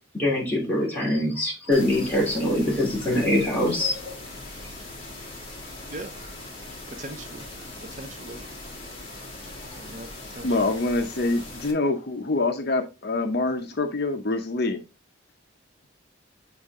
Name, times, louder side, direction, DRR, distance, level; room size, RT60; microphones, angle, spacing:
voice 1, 0.2-4.1, left 1 dB, 10° left, 2.8 m, -23 dB
sound 1, 1.7-11.7, left 2 dB, 25° left, 1.8 m, -40 dB
voice 2, 6.9-7.4 7.8-8.4 9.6-10.1 10.4-10.5, right 2 dB, 35° right, 0.5 m, -39 dB
voice 3, 10.4-14.8, left 2 dB, 50° left, 0.7 m, -25 dB
7.1 x 4.4 x 3.6 m
head